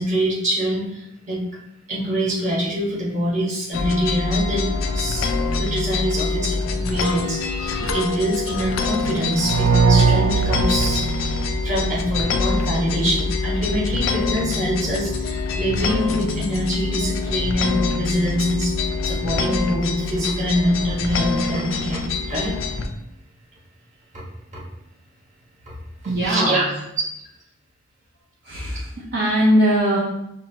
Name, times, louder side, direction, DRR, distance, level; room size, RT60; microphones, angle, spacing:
voice 1, 0.0-1.4 1.9-5.3 5.6-11.3 11.6-22.6 24.1-24.2 24.5-24.6 26.2-26.6, equal, 35° right, -5 dB, 1.3 m, -24 dB
sound 1, 3.7-22.9, left 4 dB, 70° left, 0.4 m, -25 dB
sound 2, 9.4-12.2, right 5 dB, 90° right, 0.3 m, -20 dB
voice 2, 26.0-26.6 28.4-30.0, equal, 50° right, -6 dB, 0.7 m, -20 dB
5.4 x 2.5 x 2.8 m, 0.84 s
head